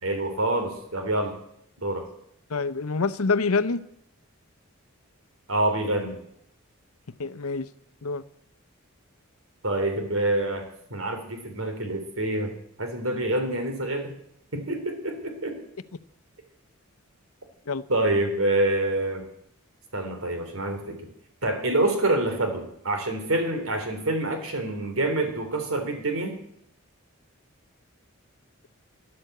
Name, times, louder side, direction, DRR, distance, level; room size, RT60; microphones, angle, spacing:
voice 1, 0.0-1.4 1.8-2.0 5.5-6.2 9.6-10.6 10.9-14.1 14.5-15.6 17.9-19.2 19.9-21.1 21.4-26.4, right 1 dB, 70° right, 5 dB, 3.4 m, -26 dB
voice 2, 2.5-3.8 7.2-7.7 8.0-8.2 17.7-17.8, left 4 dB, 80° left, 15 dB, 0.8 m, -26 dB
13.0 x 11.5 x 7.9 m, 0.75 s
head